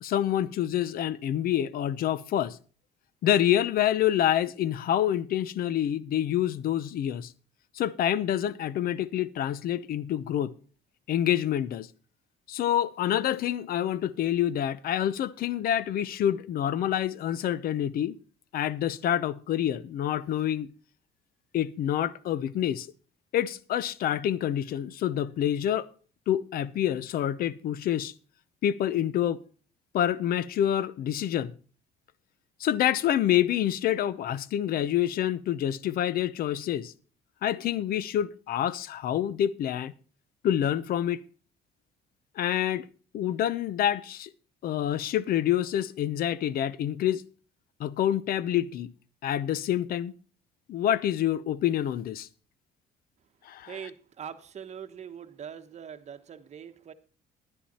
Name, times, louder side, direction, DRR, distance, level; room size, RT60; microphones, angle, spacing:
voice 1, 0.0-2.6 3.2-7.3 7.7-10.5 11.1-11.9 12.5-18.2 18.5-20.7 21.5-22.9 23.3-25.9 26.3-28.1 28.6-29.4 29.9-31.5 32.6-36.9 37.4-39.9 40.4-41.2 42.4-42.9 43.1-44.3 44.6-47.2 47.8-48.9 49.2-50.1 50.7-52.3 53.4-53.7, left 11 dB, 60° left, 0.7 m, -27 dB
voice 2, 53.6-56.9, right 8 dB, 40° right, 1.1 m, -42 dB
11.0 x 10.5 x 4.2 m
cardioid pair, 110°, 17 cm